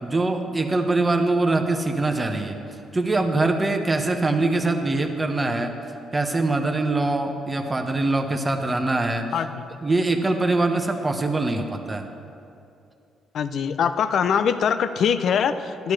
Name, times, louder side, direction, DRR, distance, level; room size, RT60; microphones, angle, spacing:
voice 1, 0.0-2.6 2.9-5.7 6.1-9.3 9.8-12.1, right 2 dB, 20° right, 4 dB, 1.0 m, -23 dB
voice 2, 9.3-9.6 13.3-15.9, left 7 dB, 65° left, 11 dB, 0.5 m, -23 dB
12.5 x 11.5 x 3.2 m, 2.5 s
cardioid pair, 90°, 0 cm